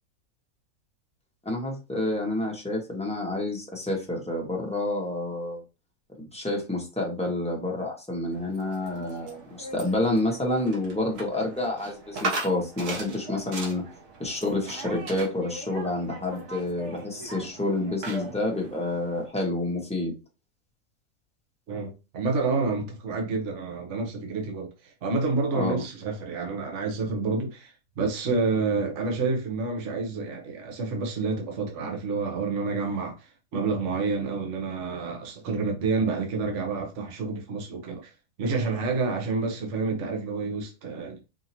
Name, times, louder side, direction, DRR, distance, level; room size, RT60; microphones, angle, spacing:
voice 1, 1.4-5.6 6.2-13.8 14.2-20.1 25.5-25.8, left 2 dB, 5° left, 1.0 m, -29 dB
sound 1, 8.3-19.3, right 2 dB, 85° right, 1.7 m, -38 dB
voice 2, 21.7-38.1 38.4-41.2, right 4 dB, 55° right, 1.1 m, -29 dB
5.0 x 2.7 x 2.8 m
omnidirectional pair, 1.6 m